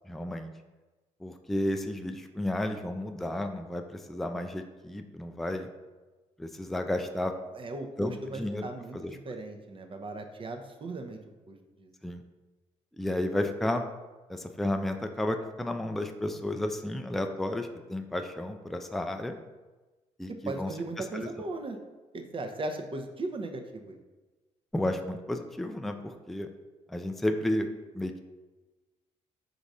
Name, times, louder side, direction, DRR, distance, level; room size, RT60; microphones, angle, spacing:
voice 1, 0.1-0.5 1.2-5.7 6.4-7.3 8.0-8.7 8.9-9.2 12.0-12.2 13.0-13.8 14.3-19.4 20.2-20.7 21.0-21.3 24.7-26.5 26.9-27.7 27.9-28.2, left 1 dB, ahead, 6 dB, 0.4 m, -32 dB
voice 2, 7.5-11.2 11.5-11.9 20.5-21.8 22.1-24.0, right 2 dB, 35° right, 5 dB, 0.7 m, -37 dB
3.9 x 2.6 x 4.7 m, 1.2 s
supercardioid pair, 60°, 15 cm